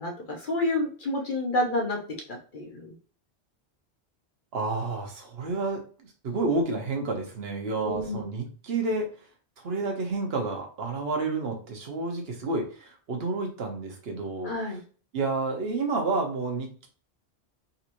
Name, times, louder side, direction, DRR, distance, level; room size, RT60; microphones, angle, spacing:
voice 1, 0.0-2.0 2.3-2.9 7.7-8.2 14.4-14.8, left 1 dB, 50° left, 0 dB, 1.0 m, -29 dB
voice 2, 4.5-9.1 9.6-14.5 15.1-16.9, right 3 dB, 70° right, 3 dB, 1.2 m, -30 dB
4.0 x 2.9 x 2.6 m, 0.40 s
omnidirectional pair, 1.1 m